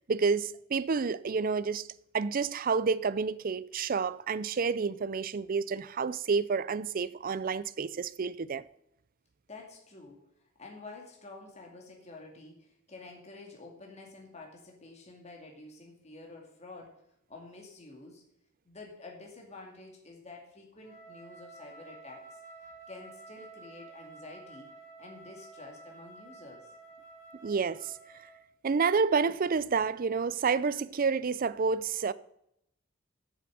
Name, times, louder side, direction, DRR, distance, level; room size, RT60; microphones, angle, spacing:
voice 1, 0.1-1.9 2.1-8.6 27.4-27.9 28.6-32.1, right 5 dB, 45° right, 0.5 m, -29 dB
voice 2, 9.5-10.2 10.6-17.0 17.3-18.2 18.6-22.4 22.9-24.7 25.0-26.7, left 3 dB, 35° left, 2.3 m, -49 dB
Wind instrument woodwind instrument, 20.8-28.5, right 3 dB, 80° left, 2.3 m, -51 dB
8.5 x 7.2 x 7.6 m
head